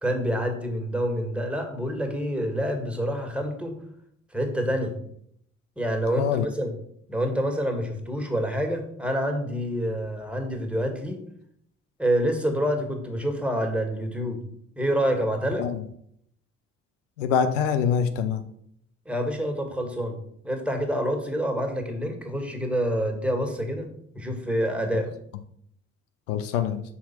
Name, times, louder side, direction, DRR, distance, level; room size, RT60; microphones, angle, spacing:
voice 1, 0.0-3.7 4.3-4.9 5.8-6.7 7.1-11.2 12.0-14.4 14.8-15.7 19.0-20.2 20.4-23.9 24.1-25.1, equal, 5° right, 3 dB, 1.7 m, -27 dB
voice 2, 17.2-18.4 26.3-26.8, left 7 dB, 75° left, 9 dB, 0.6 m, -24 dB
6.0 x 4.2 x 5.8 m, 0.68 s
figure-of-eight pair, 45°, 38 cm